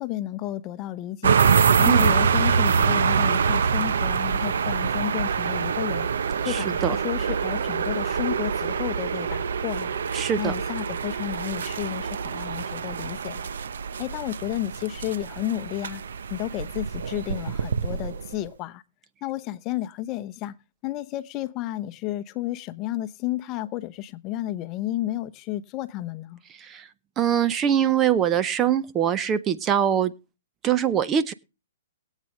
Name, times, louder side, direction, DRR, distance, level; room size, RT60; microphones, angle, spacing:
voice 1, 0.0-1.4 1.8-6.1 6.4-9.9 10.4-13.4 14.0-16.0 16.3-18.8 19.2-20.6 20.8-26.4, left 14 dB, 30° left, 0.8 m, -32 dB
sound 1, 1.2-18.5, right 6 dB, 80° right, 0.8 m, -25 dB
voice 2, 6.4-7.0 10.1-10.6 26.5-26.9 27.2-30.1 30.6-31.3, right 9 dB, 20° right, 0.6 m, -23 dB
21.5 x 8.4 x 3.1 m
hypercardioid pair, 155°, 0 cm